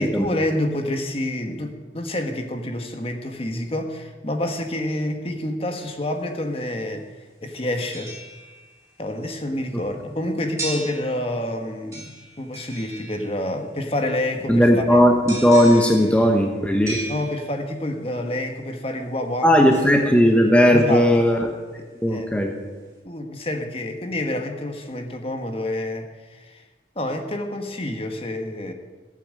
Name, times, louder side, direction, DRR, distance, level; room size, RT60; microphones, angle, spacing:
voice 1, 0.0-7.1 7.4-8.1 9.0-12.1 12.4-14.8 17.1-19.5 20.7-21.1 22.1-22.3 23.0-26.6 26.9-28.7, left 1 dB, 30° left, 4 dB, 1.4 m, -28 dB
sound 1, 7.8-9.0 10.6-11.5 11.9-13.6 15.3-17.8 19.7-20.9 21.4-21.5, right 2 dB, 15° right, 4.3 m, -37 dB
voice 2, 14.5-17.0 19.4-21.5 22.0-22.5, equal, 5° left, 2 dB, 1.2 m, -17 dB
16.0 x 9.0 x 7.6 m, 1.3 s
head